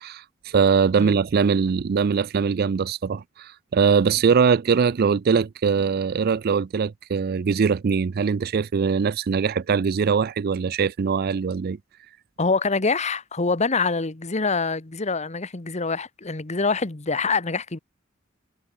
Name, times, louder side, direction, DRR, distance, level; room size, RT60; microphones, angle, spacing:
voice 1, 0.0-11.8, right 6 dB, 50° right, 0.4 m, -22 dB
voice 2, 12.4-17.8, left 4 dB, 35° left, 1.2 m, -25 dB
head